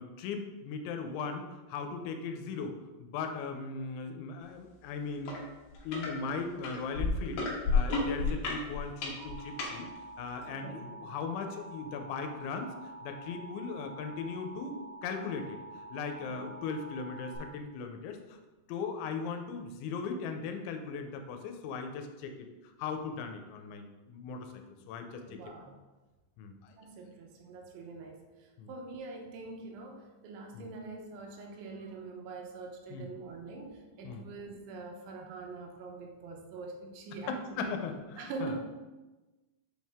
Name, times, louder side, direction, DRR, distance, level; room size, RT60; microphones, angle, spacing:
voice 1, 0.0-5.4 5.8-7.5 7.7-9.9 10.2-12.7 13.0-15.6 15.9-18.2 18.7-22.5 22.8-25.2 26.4-26.7 28.6-28.7 30.5-30.7 32.9-33.1 33.6-33.7 34.0-34.3 37.3-38.6, left 5 dB, 85° left, 5 dB, 3.0 m, -38 dB
sound 1, 5.3-5.4 5.7-6.1 6.6-9.7 10.4-10.5, left 4 dB, 65° left, 2.7 m, -30 dB
Alarm, 9.2-17.4, right 2 dB, 75° right, 1.3 m, -47 dB
voice 2, 10.5-10.9 16.2-16.5 24.8-24.9 25.2-25.7 26.8-37.9 38.2-38.6, right 3 dB, 90° right, 2 dB, 3.3 m, -44 dB
8.1 x 4.5 x 3.5 m, 1.1 s
omnidirectional pair, 5.2 m